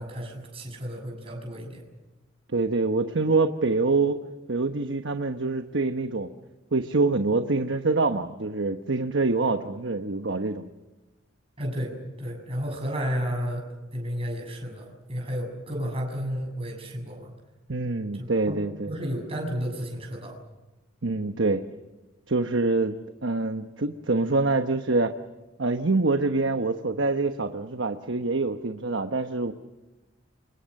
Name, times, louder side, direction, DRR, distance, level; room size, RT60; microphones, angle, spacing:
voice 1, 0.0-1.8 11.6-11.9 12.2-13.6 13.9-17.3 18.1-18.6 18.9-20.4, equal, 30° right, 1 dB, 7.1 m, -32 dB
voice 2, 2.5-4.2 4.5-6.3 6.7-10.7 17.7-18.9 21.0-21.6 22.3-22.9 23.2-25.1 25.6-29.5, right 3 dB, 70° right, 7 dB, 1.1 m, -25 dB
29.0 x 25.0 x 6.6 m, 1.1 s
head